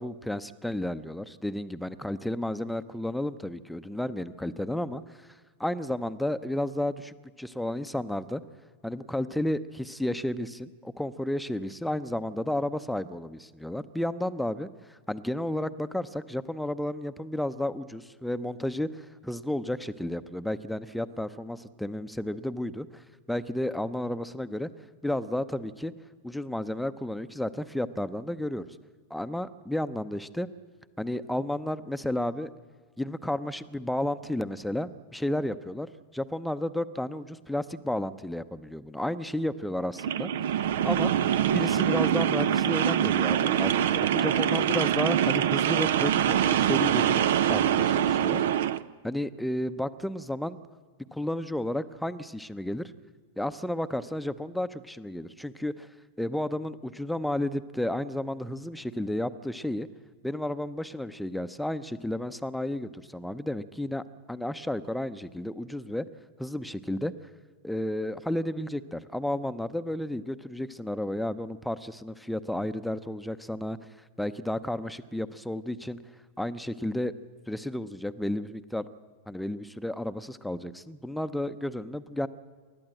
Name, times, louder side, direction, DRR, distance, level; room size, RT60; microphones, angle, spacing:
voice 1, 0.0-5.0 5.6-8.4 8.8-24.7 25.0-25.9 26.2-28.8 29.1-30.5 31.0-32.5 33.0-41.1 41.5-48.4 49.0-50.6 51.1-52.9 53.4-55.9 56.2-59.9 60.2-66.1 66.4-67.1 67.6-73.8 74.2-76.0 76.4-77.1 77.5-78.9 79.3-82.3, left 1 dB, ahead, 12 dB, 0.8 m, -32 dB
sound 1, 40.0-48.8, right 10 dB, 55° right, 0.6 m, -24 dB
28.5 x 12.5 x 7.7 m, 1.5 s
figure-of-eight pair, 90°, 0 cm